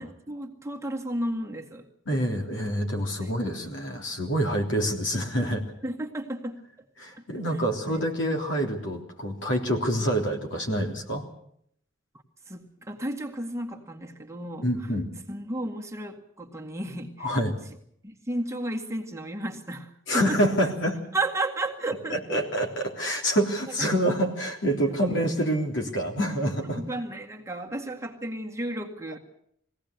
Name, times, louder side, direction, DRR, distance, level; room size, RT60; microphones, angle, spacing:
voice 1, 0.0-1.9 3.1-3.3 5.8-6.6 7.2-7.4 7.8-8.0 12.5-14.7 15.3-17.4 18.0-20.4 21.1-22.4 23.8-23.9 25.1-25.2 26.7-29.2, right 1 dB, 15° right, 1 dB, 2.0 m, -33 dB
voice 2, 2.1-5.6 7.0-11.2 14.6-15.1 17.2-17.5 20.1-21.0 22.1-26.8, equal, 70° left, 2 dB, 3.5 m, -27 dB
21.5 x 17.0 x 8.2 m, 0.69 s
head